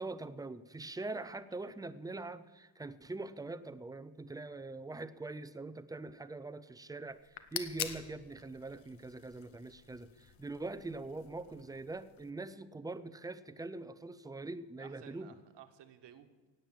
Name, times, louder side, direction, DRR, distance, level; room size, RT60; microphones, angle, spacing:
voice 1, 0.0-15.3, right 2 dB, 10° right, 14 dB, 0.4 m, -43 dB
sound 1, 7.1-12.3, left 10 dB, 80° left, 1.3 m, -46 dB
voice 2, 14.8-16.5, right 9 dB, 65° right, 8 dB, 1.5 m, -56 dB
17.0 x 8.9 x 7.5 m, 1.3 s
cardioid pair, 150°, 45 cm